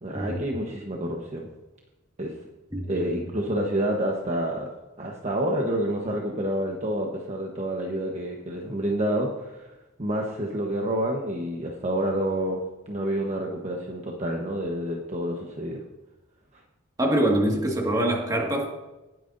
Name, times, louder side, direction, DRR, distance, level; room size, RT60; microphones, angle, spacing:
voice 1, 0.0-1.5 2.2-2.4 2.9-4.7 5.0-9.7 10.0-12.6 12.9-15.8, right 1 dB, 35° right, 0 dB, 1.1 m, -28 dB
voice 2, 2.7-3.3 17.0-18.7, right 1 dB, 15° right, 0 dB, 1.9 m, -25 dB
19.5 x 9.1 x 2.7 m, 1.1 s
head